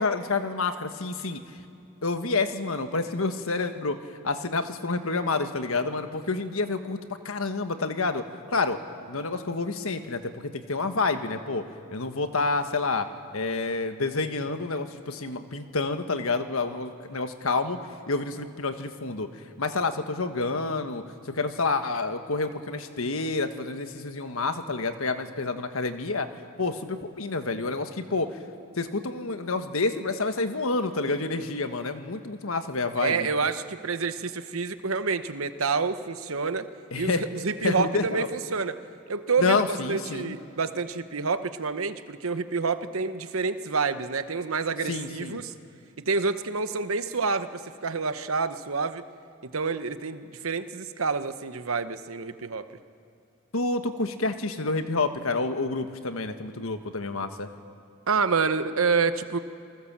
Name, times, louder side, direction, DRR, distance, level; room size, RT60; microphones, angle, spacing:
voice 1, 0.0-1.4 2.0-4.0 4.2-7.0 7.2-8.8 9.1-11.6 11.9-13.1 13.3-17.8 18.1-19.3 19.6-26.3 26.6-28.3 28.8-33.3 36.9-37.2 37.6-38.3 39.4-40.3 44.9-45.4 53.5-57.5, left 3 dB, 80° left, 8 dB, 1.4 m, -28 dB
voice 2, 33.0-36.7 37.0-38.8 39.1-45.5 46.0-49.0 49.4-52.7 58.1-59.4, right 4 dB, 80° right, 11 dB, 1.0 m, -28 dB
28.0 x 19.0 x 7.4 m, 2.7 s
head